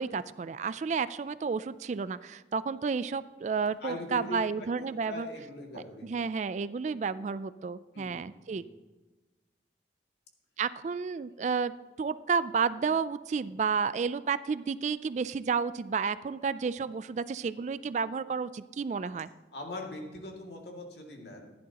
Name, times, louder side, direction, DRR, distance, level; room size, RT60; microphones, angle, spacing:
voice 1, 0.0-5.3 5.7-8.6 10.6-11.7 12.0-19.3, right 5 dB, 40° right, 15 dB, 0.3 m, -31 dB
voice 2, 3.8-6.2 7.9-8.1 8.5-8.6 19.5-21.5, left 1 dB, 70° left, 0 dB, 2.3 m, -41 dB
15.5 x 11.0 x 2.9 m, 1.2 s
head